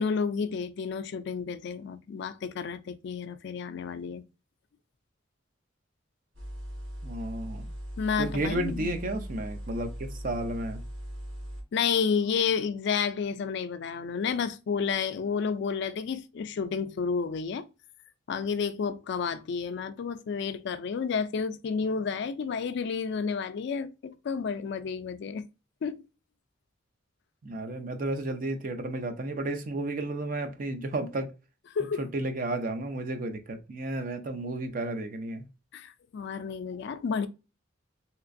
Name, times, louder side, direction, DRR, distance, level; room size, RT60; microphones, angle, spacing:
voice 1, 0.0-4.2 8.0-8.9 11.7-17.7 18.3-25.4 25.8-26.0 31.7-32.1 35.7-37.3, left 6 dB, 60° left, 0.3 m, -31 dB
sound 1, 6.3-11.6, equal, 85° right, 1.1 m, -39 dB
voice 2, 7.0-7.7 8.2-10.8 27.4-31.3 32.0-35.4, right 2 dB, 45° right, 0.5 m, -32 dB
3.2 x 2.9 x 2.5 m
head